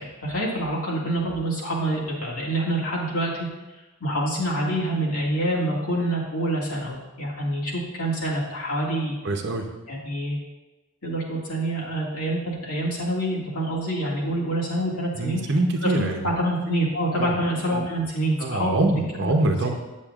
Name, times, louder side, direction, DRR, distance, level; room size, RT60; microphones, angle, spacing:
voice 1, 0.0-3.5 4.0-9.2 9.9-10.4 11.0-15.4 15.8-18.9 19.2-19.3, right 1 dB, 85° left, -5 dB, 2.0 m, -26 dB
voice 2, 9.2-9.7 15.2-16.3 17.2-17.4 18.4-19.7, right 2 dB, 55° right, 4 dB, 0.8 m, -24 dB
8.8 x 7.3 x 2.4 m, 1.1 s
head